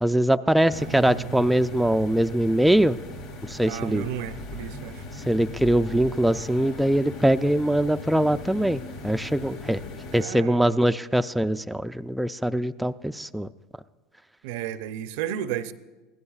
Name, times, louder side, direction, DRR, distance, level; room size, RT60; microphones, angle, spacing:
voice 1, 0.0-3.0 3.5-4.1 5.3-9.8 10.1-13.5, right 1 dB, 5° right, 0.3 m, -22 dB
voice 2, 0.6-1.5 3.7-5.0 10.2-10.8 14.4-15.7, right 10 dB, 75° right, 0.6 m, -33 dB
sound 1, 0.7-10.2, left 2 dB, 75° left, 1.3 m, -39 dB
22.5 x 15.5 x 2.4 m
supercardioid pair, 100°, 0 cm